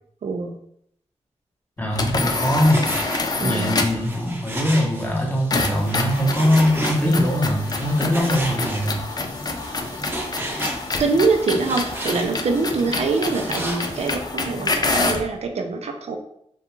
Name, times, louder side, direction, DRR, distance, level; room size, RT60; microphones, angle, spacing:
voice 1, 0.2-0.6 3.4-3.8 10.5-10.6 11.0-16.2, right 4 dB, 65° right, 4 dB, 0.4 m, -24 dB
voice 2, 1.8-2.9 3.4-9.0, equal, 15° left, -2 dB, 0.7 m, -21 dB
sound 1, 1.9-4.1 5.5-15.3, left 3 dB, 35° left, 0.3 m, -27 dB
Frying (food), 2.2-14.1, right 1 dB, 20° right, 0.7 m, -34 dB
2.4 x 2.2 x 3.0 m, 0.71 s
wide cardioid pair, 70°, 11 cm